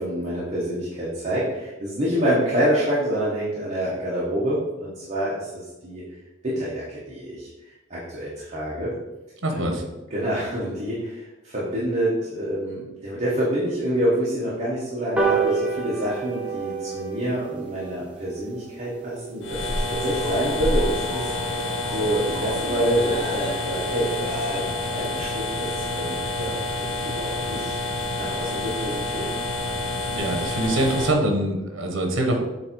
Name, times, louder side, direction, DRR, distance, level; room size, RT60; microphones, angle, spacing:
voice 1, 0.0-6.0 6.4-8.9 9.5-9.8 10.1-27.8 28.2-29.3, equal, 35° right, -7 dB, 1.3 m, -27 dB
voice 2, 9.4-9.8 30.1-32.4, right 1 dB, 85° right, 3 dB, 1.0 m, -24 dB
sound 1, 15.2-21.9 22.3-22.4 22.7-22.9 23.1-23.2 23.5-23.6 23.9-24.2 24.6-24.7, right 5 dB, 5° right, 0.9 m, -30 dB
sound 2, 19.4-31.1, left 2 dB, 75° left, 0.7 m, -28 dB
sound 3, 19.5-24.6, equal, 50° right, 1.5 m, -36 dB
8.0 x 2.8 x 4.5 m, 1.1 s
head